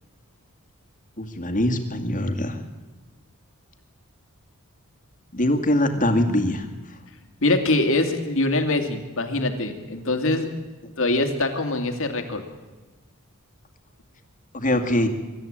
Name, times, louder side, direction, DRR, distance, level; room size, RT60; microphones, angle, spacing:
voice 1, 1.2-2.6 5.3-6.6 14.5-15.1, left 1 dB, 40° left, 6 dB, 2.2 m, -22 dB
voice 2, 7.4-10.5 11.0-12.4, left 2 dB, 65° left, 6 dB, 2.5 m, -23 dB
24.5 x 13.5 x 8.9 m, 1.2 s
head